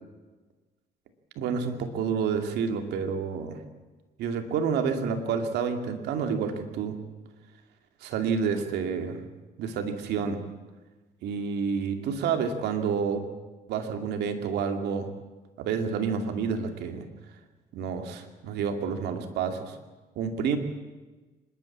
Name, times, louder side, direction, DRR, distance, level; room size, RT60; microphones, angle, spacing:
voice 1, 1.4-3.6 4.2-7.0 8.0-9.2 9.6-10.4 11.2-13.3 13.7-15.1 15.6-17.0 17.7-19.8 20.2-20.6, right 6 dB, 80° right, 6 dB, 2.5 m, -29 dB
25.5 x 12.0 x 8.6 m, 1.2 s
cardioid pair, 110°, 17 cm